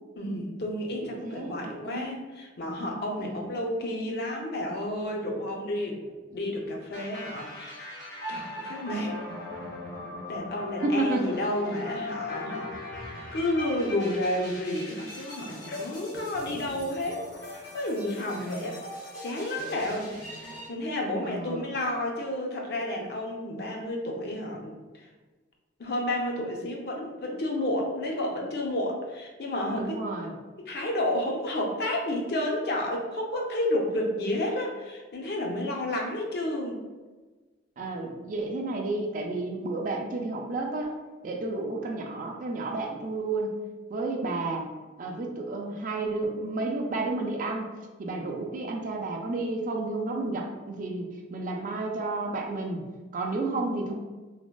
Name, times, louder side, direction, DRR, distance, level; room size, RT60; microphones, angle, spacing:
voice 1, 0.2-6.0 6.3-7.8 8.3-9.1 10.3-12.7 13.3-18.8 19.2-20.1 20.7-25.1 25.8-30.0 30.6-36.8, left 1 dB, 55° left, 0 dB, 0.5 m, -31 dB
voice 2, 1.1-2.2 3.2-3.5 10.8-11.3 18.3-18.7 21.2-21.7 29.7-30.3 37.8-40.9 41.2-43.5 43.9-44.7 45.0-52.8 53.1-53.9, right 2 dB, 40° right, 1 dB, 0.3 m, -31 dB
sound 1, 6.9-20.7, left 2 dB, 85° left, 1.0 m, -40 dB
3.4 x 2.1 x 2.2 m, 1.3 s
head